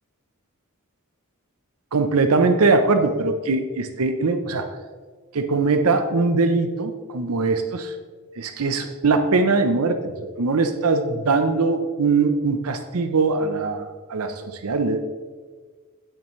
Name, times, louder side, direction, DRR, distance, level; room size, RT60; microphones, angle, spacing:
voice 1, 1.9-4.7 5.3-7.9 8.4-10.1 10.4-13.8 14.1-15.0, right 3 dB, 80° right, 8 dB, 0.6 m, -21 dB
8.9 x 8.9 x 3.1 m, 1.5 s
head